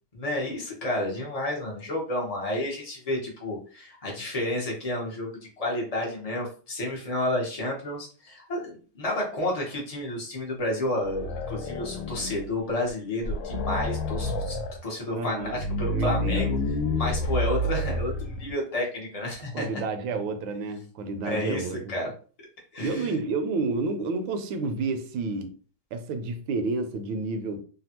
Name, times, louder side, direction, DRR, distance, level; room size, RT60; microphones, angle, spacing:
voice 1, 0.1-16.6 17.0-19.8 21.2-22.1 22.7-23.1, left 1 dB, 50° left, 0.4 m, -31 dB
sound 1, 11.0-12.5 12.9-13.0 13.2-14.8 15.4-18.5, left 1 dB, 75° left, 1.2 m, -29 dB
voice 2, 15.1-15.6 15.9-16.5 17.8-18.0 19.5-22.0 22.8-25.5 25.9-27.6, right 3 dB, 75° right, 1.3 m, -30 dB
3.3 x 2.3 x 2.8 m
omnidirectional pair, 2.2 m